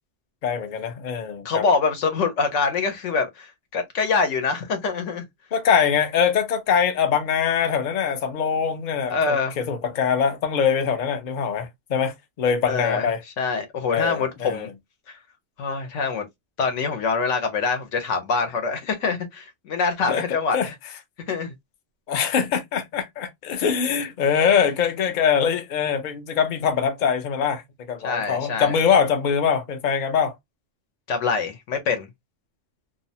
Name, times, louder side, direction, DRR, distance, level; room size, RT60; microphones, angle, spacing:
voice 1, 0.4-1.7 5.5-13.2 13.9-14.7 20.1-20.2 20.5-20.7 22.1-30.3, left 7 dB, 50° left, 0.6 m, -23 dB
voice 2, 1.4-5.2 9.1-9.5 12.7-13.1 13.4-14.7 15.1-15.2 15.6-16.3 16.6-20.6 21.3-21.5 28.0-28.7 31.1-32.1, left 4 dB, 80° left, 1.0 m, -24 dB
2.6 x 2.1 x 2.6 m
omnidirectional pair, 1.2 m